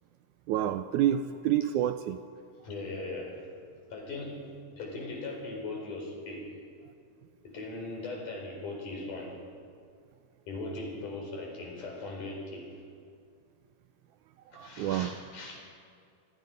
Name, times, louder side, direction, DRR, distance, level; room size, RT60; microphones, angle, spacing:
voice 1, 0.5-2.2 14.5-15.1, right 11 dB, 80° right, 10 dB, 1.9 m, -28 dB
voice 2, 2.6-3.4 3.9-4.5 4.8-6.5 7.4-9.4 10.5-12.7 14.5-15.6, left 2 dB, 65° left, 0 dB, 5.9 m, -39 dB
27.5 x 19.0 x 5.2 m, 2.3 s
omnidirectional pair, 3.8 m